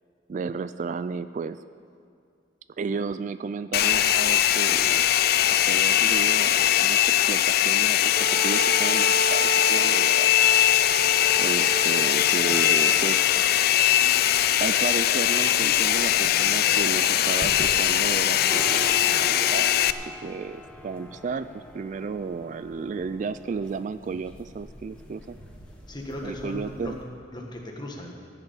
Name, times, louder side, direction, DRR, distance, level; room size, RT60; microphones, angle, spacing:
voice 1, 0.3-1.6 2.8-5.0 5.5-10.3 11.4-13.3 14.6-19.8 20.0-25.4 26.2-27.0, right 5 dB, 40° right, 13 dB, 0.3 m, -33 dB
Domestic sounds home sounds, 3.7-19.9, left 12 dB, 55° left, 0.4 m, -21 dB
Wind instrument woodwind instrument, 8.2-13.3, equal, 80° right, 2.9 m, -31 dB
sound 1, 10.2-27.0, equal, 5° left, 1.4 m, -43 dB
voice 2, 25.9-26.9 27.3-28.1, left 1 dB, 25° left, 0 dB, 1.7 m, -37 dB
15.0 x 6.9 x 8.3 m, 2.3 s
head